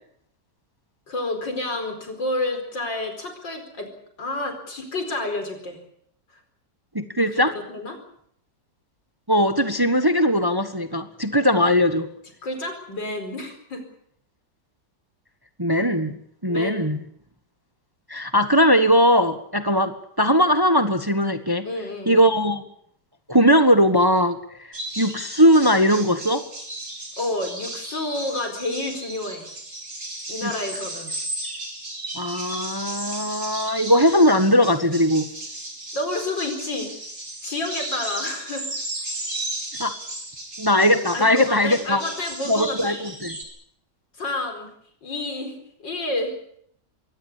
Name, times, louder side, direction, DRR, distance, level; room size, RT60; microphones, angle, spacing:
voice 1, 1.1-3.9 4.2-5.8 7.3-7.4 7.7-8.0 12.4-13.8 16.5-16.9 21.6-22.3 27.2-29.5 30.3-31.1 35.9-36.9 37.4-38.7 41.1-43.0 44.2-44.7 45.0-46.3, left 2 dB, 90° left, 6 dB, 5.3 m, -29 dB
voice 2, 6.9-7.5 9.3-12.1 15.6-16.2 16.4-17.0 18.1-21.7 22.1-22.6 23.3-24.4 25.0-26.4 30.4-30.5 32.1-35.3 39.8-39.9 40.6-42.0 42.5-43.3, equal, 15° right, 10 dB, 1.3 m, -19 dB
sound 1, 24.7-43.4, right 2 dB, 40° right, 4.8 m, -35 dB
23.0 x 17.5 x 8.4 m, 0.67 s
omnidirectional pair, 1.9 m